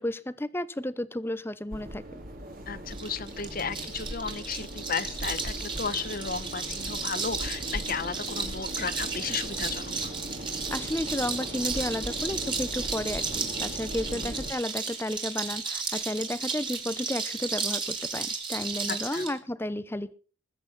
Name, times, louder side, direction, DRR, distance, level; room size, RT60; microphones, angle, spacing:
voice 1, 0.0-2.0 10.7-20.1, left 1 dB, 10° left, 15 dB, 0.8 m, -32 dB
sound 1, 1.7-14.5, equal, 45° right, 3.4 m, -39 dB
voice 2, 2.7-10.1 14.1-14.4 18.9-19.3, left 5 dB, 45° left, 15 dB, 1.0 m, -34 dB
sound 2, 2.9-19.3, right 4 dB, 25° right, 3.1 m, -34 dB
20.5 x 8.7 x 5.7 m, 0.40 s
head